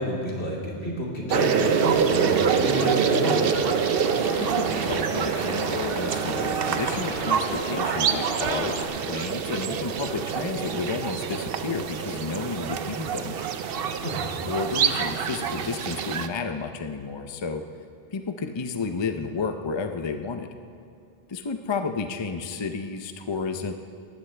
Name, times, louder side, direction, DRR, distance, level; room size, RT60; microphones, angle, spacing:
voice 1, 0.0-3.5 14.0-14.3, equal, 65° left, -4 dB, 3.1 m, -29 dB
sound 1, 1.3-16.3, right 7 dB, 60° right, 0.8 m, -26 dB
sound 2, 1.5-8.8, left 1 dB, 85° left, 2.9 m, -35 dB
voice 2, 4.1-13.4 14.5-17.6 18.1-20.5 21.3-23.7, left 4 dB, 30° left, 6 dB, 0.5 m, -31 dB
19.5 x 15.0 x 3.4 m, 2.4 s
omnidirectional pair, 1.2 m